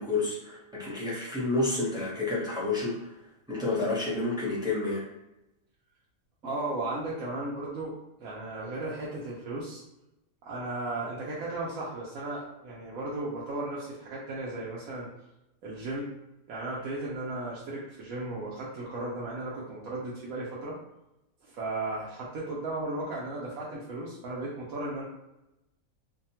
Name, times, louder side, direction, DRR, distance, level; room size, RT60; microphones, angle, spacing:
voice 1, 0.0-3.1 3.5-5.1, left 2 dB, 5° right, -7 dB, 0.4 m, -30 dB
voice 2, 6.4-9.8 10.4-15.1 15.6-16.1 16.5-20.8 21.4-25.0, right 2 dB, 75° right, -6 dB, 1.0 m, -35 dB
2.7 x 2.2 x 2.7 m, 0.91 s
omnidirectional pair, 1.5 m